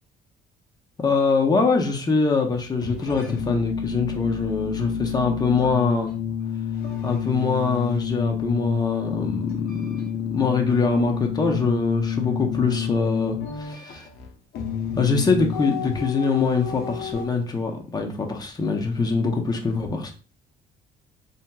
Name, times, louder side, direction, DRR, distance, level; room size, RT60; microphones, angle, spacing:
voice 1, 1.0-6.1 7.0-10.0 10.3-14.1 14.9-20.1, left 4 dB, 25° left, 2 dB, 0.7 m, -23 dB
sound 1, 2.8-17.3, left 8 dB, 70° left, 0.7 m, -29 dB
2.9 x 2.8 x 2.2 m, 0.37 s
cardioid pair, 110°, 17 cm